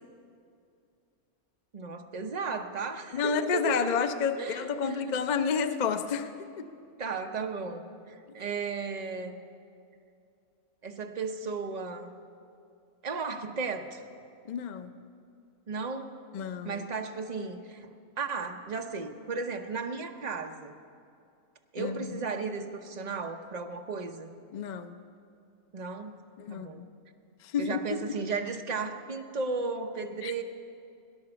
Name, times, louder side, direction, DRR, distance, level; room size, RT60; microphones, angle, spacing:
voice 1, 1.7-4.1 4.4-5.1 7.0-9.4 10.8-12.2 13.0-14.0 15.7-16.1 16.6-20.7 21.7-24.3 25.7-26.2 26.5-26.8 27.6-30.4, right 4 dB, 35° right, 5 dB, 0.8 m, -35 dB
voice 2, 3.1-6.3 6.6-6.7 14.5-14.9 16.3-16.8 21.8-22.2 24.5-24.9 26.4-26.9 27.4-28.0 30.2-30.3, left 6 dB, 55° left, 9 dB, 0.5 m, -30 dB
17.5 x 11.0 x 7.0 m, 2.4 s
omnidirectional pair, 1.6 m